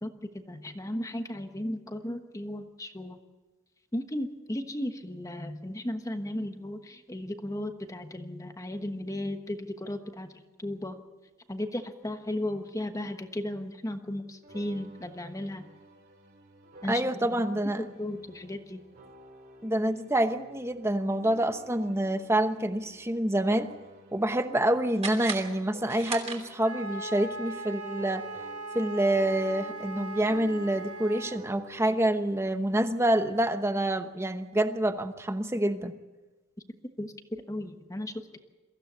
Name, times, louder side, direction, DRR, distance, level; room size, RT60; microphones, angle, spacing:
voice 1, 0.0-3.2 3.9-11.0 11.5-15.7 16.8-17.4 17.8-18.8 37.0-37.1 37.5-38.4, left 1 dB, 15° left, 7 dB, 1.2 m, -35 dB
sound 1, 14.4-28.9 29.1-33.6, right 1 dB, 45° right, 2.6 m, -53 dB
voice 2, 16.9-17.8 19.6-23.7 24.1-28.2 28.7-35.9, right 1 dB, 10° right, 9 dB, 1.0 m, -27 dB
sound 2, 25.0-26.9, right 4 dB, 30° right, 3.1 m, -38 dB
Wind instrument woodwind instrument, 26.6-31.4, right 1 dB, 85° right, 2.4 m, -39 dB
23.0 x 15.5 x 8.1 m, 1.2 s
head